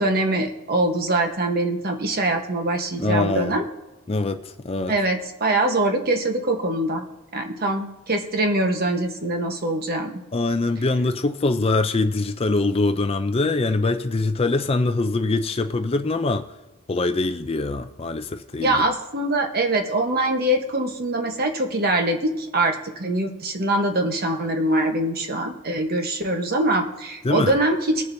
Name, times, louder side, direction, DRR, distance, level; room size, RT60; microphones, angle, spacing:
voice 1, 0.0-3.6 4.9-7.1 7.3-10.2 18.6-28.0, right 1 dB, 45° right, 1.1 m, -23 dB
voice 2, 3.0-3.6 4.1-4.9 10.3-16.5 16.9-18.8 27.2-27.6, left 3 dB, 25° left, 0.4 m, -23 dB
21.5 x 7.2 x 2.7 m
head